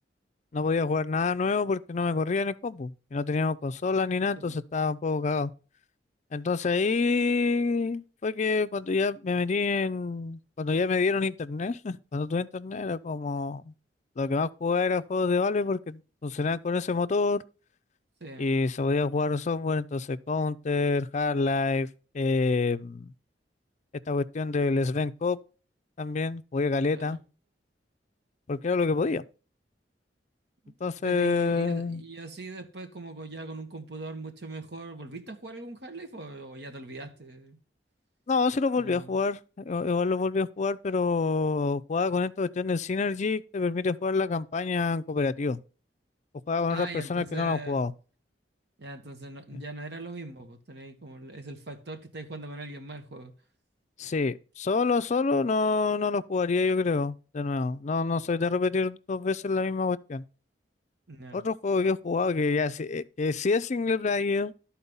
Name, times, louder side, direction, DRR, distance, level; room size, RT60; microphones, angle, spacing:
voice 1, 0.5-5.5 6.3-13.7 14.2-17.4 18.4-21.9 22.1-23.1 24.1-25.4 26.0-27.2 28.5-29.2 30.8-32.0 38.3-45.6 46.5-47.9 49.5-49.6 54.0-60.2 61.3-64.5, left 4 dB, 40° left, 0.5 m, -27 dB
voice 2, 31.0-37.6 38.8-39.2 46.7-47.8 48.8-53.3 61.1-61.4, right 2 dB, 70° right, 1.5 m, -41 dB
12.5 x 4.4 x 5.5 m
head